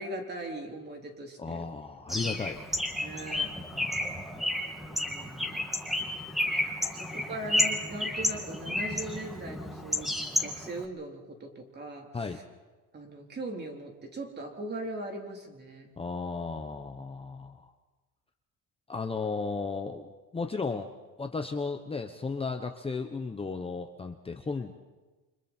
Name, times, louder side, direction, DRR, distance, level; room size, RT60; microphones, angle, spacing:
voice 1, 0.0-1.6 3.0-3.5 4.8-5.7 6.9-10.1 10.4-12.4 12.9-15.9 24.6-24.7, right 1 dB, 30° right, 2 dB, 3.8 m, -40 dB
voice 2, 1.4-2.6 3.7-4.7 7.0-7.1 12.1-12.4 16.0-17.7 18.9-20.9 21.2-24.7, left 4 dB, 15° left, 5 dB, 1.1 m, -35 dB
Bird, 2.1-10.8, left 1 dB, ahead, 2.5 m, -31 dB
29.0 x 26.5 x 4.5 m, 1.3 s
cardioid pair, 150°, 35 cm